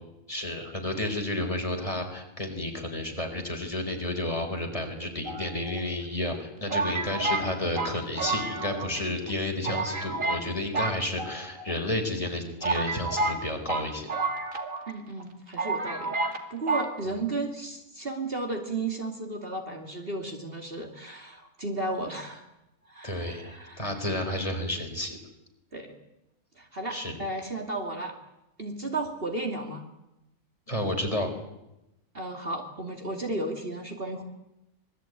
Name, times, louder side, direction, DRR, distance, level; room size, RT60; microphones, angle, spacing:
voice 1, 0.3-14.1 23.0-25.2 26.9-27.1 30.7-31.3, left 1 dB, 20° left, 3 dB, 4.5 m, -31 dB
sound 1, 5.2-6.0 6.7-9.0 9.3-9.4 9.6-10.5 10.7-11.7 12.3-12.4 12.6-14.9 15.2-15.3 15.6-16.4 16.7-16.9, right 3 dB, 60° right, 2.8 m, -30 dB
voice 2, 14.9-16.2 16.5-22.4 22.9-23.9 25.7-25.9 26.6-28.1 28.6-29.8 32.1-34.2, right 2 dB, 40° right, 3 dB, 2.8 m, -34 dB
26.0 x 21.0 x 9.3 m, 0.92 s
omnidirectional pair, 1.6 m